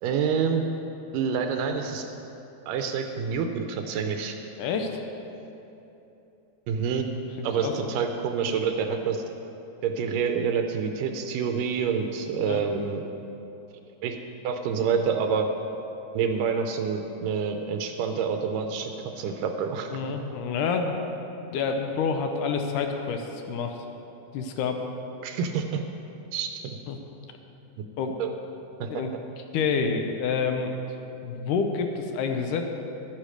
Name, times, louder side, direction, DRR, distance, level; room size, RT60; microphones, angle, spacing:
voice 1, 0.0-0.6 1.1-2.1 2.7-4.4 6.7-7.1 7.4-9.2 9.8-13.0 14.0-14.2 14.4-15.5 16.1-20.0 25.2-25.8 26.3-26.8 28.2-28.3 28.8-28.9, right 6 dB, 80° right, 5 dB, 2.2 m, -27 dB
voice 2, 4.6-4.9 7.6-7.8 12.3-12.6 19.9-21.2 21.5-23.8 24.3-24.8 26.9-27.0 28.0-28.1 28.9-29.1 29.5-30.7 31.2-32.7, left 5 dB, 75° left, 4 dB, 2.1 m, -28 dB
11.5 x 9.8 x 5.1 m, 2.9 s
omnidirectional pair, 4.0 m